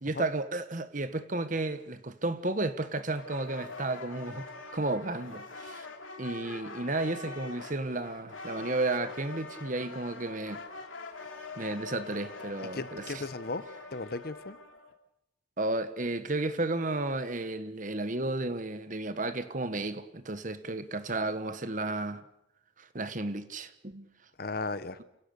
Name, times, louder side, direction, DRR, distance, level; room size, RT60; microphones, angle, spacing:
voice 1, 0.0-5.9 6.2-10.6 11.6-13.0 15.6-22.3 22.8-24.1, right 2 dB, 40° right, 1.2 m, -33 dB
sound 1, 3.2-14.9, left 3 dB, 80° left, 2.6 m, -44 dB
voice 2, 12.7-13.6 13.9-14.6 24.4-25.0, left 3 dB, 50° left, 0.9 m, -35 dB
29.0 x 17.0 x 6.8 m
head